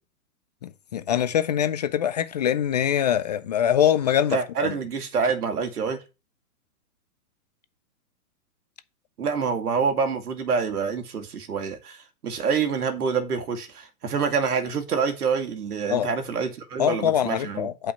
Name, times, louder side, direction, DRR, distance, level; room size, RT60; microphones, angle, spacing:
voice 1, 0.6-4.7 15.9-16.1 16.8-17.9, left 10 dB, 30° left, 0.4 m, -23 dB
voice 2, 4.3-6.0 9.2-17.7, right 5 dB, 85° right, 2.4 m, -26 dB
8.5 x 5.3 x 5.7 m
hypercardioid pair, 145°, 44 cm